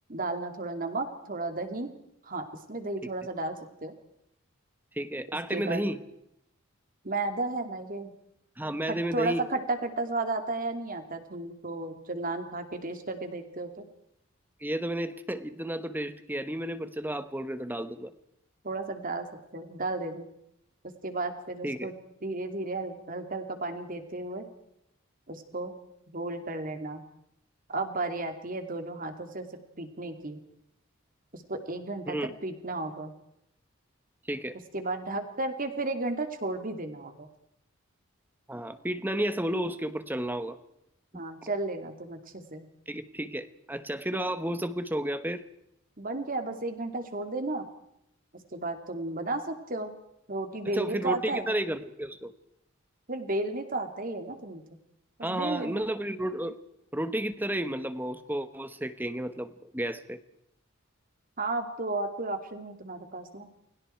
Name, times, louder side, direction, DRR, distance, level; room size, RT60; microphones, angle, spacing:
voice 1, 0.1-1.9 2.2-3.9 5.5-5.8 7.0-8.1 8.9-13.7 18.6-20.3 20.8-22.0 22.2-24.5 25.3-25.7 26.1-27.0 27.7-30.4 31.3-33.1 34.7-37.1 41.1-42.7 46.0-47.6 48.3-49.9 50.3-51.5 53.1-54.8 55.2-55.8 61.4-63.5, right 2 dB, 40° right, 7 dB, 2.7 m, -33 dB
voice 2, 5.0-6.0 8.6-9.4 14.6-18.1 21.6-21.9 32.1-32.3 34.3-34.6 38.5-40.6 41.1-41.5 42.9-45.4 50.7-52.3 55.2-56.6 56.9-60.2, right 1 dB, 10° right, 11 dB, 1.2 m, -32 dB
29.5 x 22.0 x 4.6 m, 0.79 s
head